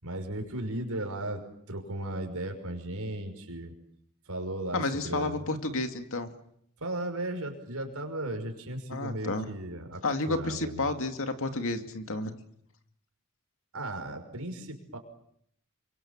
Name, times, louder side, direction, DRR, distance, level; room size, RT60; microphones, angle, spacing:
voice 1, 0.0-3.7 4.3-5.4 6.8-10.9 13.7-15.0, right 1 dB, 70° right, 5 dB, 5.7 m, -36 dB
voice 2, 4.7-6.3 8.9-9.5 10.0-12.4, left 2 dB, 65° left, 7 dB, 2.3 m, -31 dB
28.5 x 24.5 x 7.3 m, 0.71 s
head